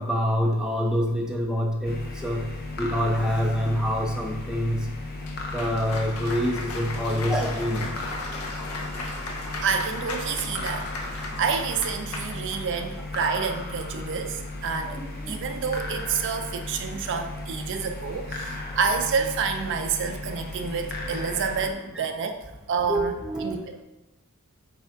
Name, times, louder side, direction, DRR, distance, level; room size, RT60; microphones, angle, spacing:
voice 1, 0.0-2.5 2.8-4.9 5.5-7.9 14.9-15.4 22.0-22.1 22.9-23.6, equal, 5° right, -1 dB, 0.5 m, -26 dB
sound 1, 1.8-21.7, left 2 dB, 45° left, 0.5 m, -36 dB
Cheering / Applause, 5.2-12.9, left 2 dB, 85° left, 0.6 m, -37 dB
voice 2, 9.6-10.8 11.1-15.0 15.3-22.4 22.7-23.1 23.4-23.8, right 5 dB, 60° right, 5 dB, 0.4 m, -28 dB
3.4 x 3.3 x 4.5 m, 1.0 s
head